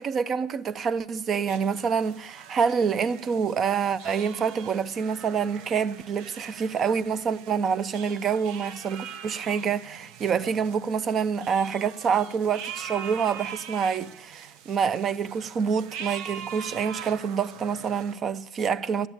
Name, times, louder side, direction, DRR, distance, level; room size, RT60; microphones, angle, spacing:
voice 1, 0.0-19.1, right 6 dB, 35° right, 0.5 m, -27 dB
sound 1, 1.5-18.2, right 8 dB, 65° right, 0.7 m, -42 dB
10.5 x 8.0 x 8.6 m
supercardioid pair, 130°, 0 cm